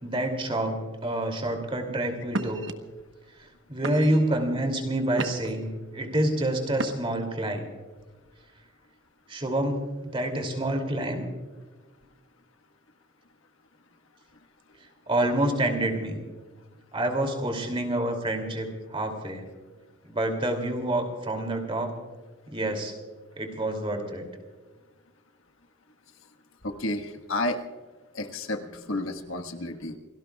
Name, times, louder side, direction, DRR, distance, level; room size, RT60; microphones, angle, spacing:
voice 1, 0.0-2.7 3.7-7.6 9.3-11.2 15.1-16.2 16.9-19.4 20.0-21.9 22.5-22.9 23.4-24.3, right 1 dB, 25° right, 4 dB, 2.7 m, -27 dB
sound 1, 1.5-1.7 2.3-2.7 3.4-3.5 3.8-4.3 4.8-5.6 6.7-7.3, right 2 dB, 60° right, 1.1 m, -33 dB
voice 2, 26.6-27.6 28.1-30.0, left 2 dB, 80° left, 5 dB, 1.5 m, -31 dB
28.5 x 18.0 x 2.3 m, 1.4 s
head